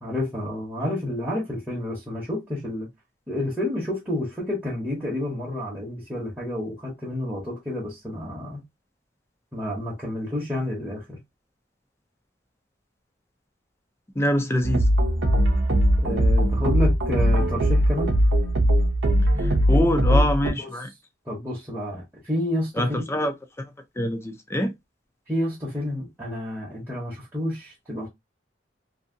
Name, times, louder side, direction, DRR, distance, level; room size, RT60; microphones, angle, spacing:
voice 1, 0.0-2.9 3.3-8.6 9.5-11.2 16.0-18.1 20.4-20.7 21.2-23.1 25.3-28.1, left 1 dB, 10° right, 0.8 m, -30 dB
voice 2, 14.2-14.9 19.4-20.9 22.8-23.7 24.0-24.7, equal, 15° left, 0.4 m, -25 dB
sound 1, 14.6-20.5, equal, 70° right, 0.7 m, -20 dB
2.7 x 2.7 x 2.5 m
head